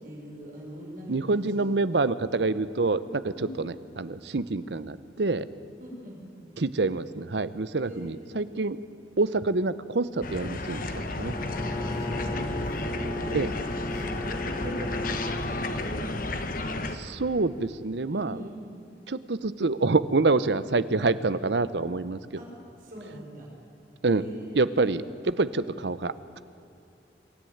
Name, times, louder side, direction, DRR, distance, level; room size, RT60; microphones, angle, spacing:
voice 1, 0.0-1.7 3.3-3.5 5.8-6.2 7.8-8.3 11.7-13.5 13.9-16.0 18.1-18.7 22.4-22.5 22.8-23.5 24.1-24.8, equal, 50° right, -2 dB, 6.5 m, -42 dB
voice 2, 1.1-5.5 6.6-8.8 9.2-10.9 11.2-11.3 13.3-13.5 16.9-18.5 19.1-22.2 24.0-24.2 24.5-26.4, right 3 dB, 80° right, 15 dB, 0.8 m, -27 dB
sound 1, 10.2-17.0, left 2 dB, 50° left, 1.4 m, -32 dB
Bowed string instrument, 11.2-16.0, left 1 dB, 15° left, 1.1 m, -36 dB
25.0 x 13.5 x 9.4 m, 2.7 s
head